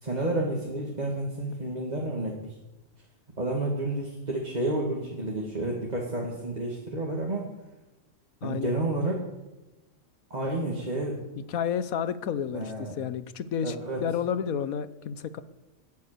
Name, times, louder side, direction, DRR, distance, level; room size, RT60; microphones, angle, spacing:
voice 1, 0.0-2.5 3.4-7.5 8.4-9.3 10.3-11.2 12.5-12.9 13.6-14.0, right 1 dB, 30° right, -2 dB, 2.4 m, -30 dB
voice 2, 8.4-8.7 11.4-15.4, left 8 dB, 85° left, 14 dB, 1.3 m, -31 dB
17.0 x 10.5 x 6.8 m, 1.1 s
omnidirectional pair, 1.4 m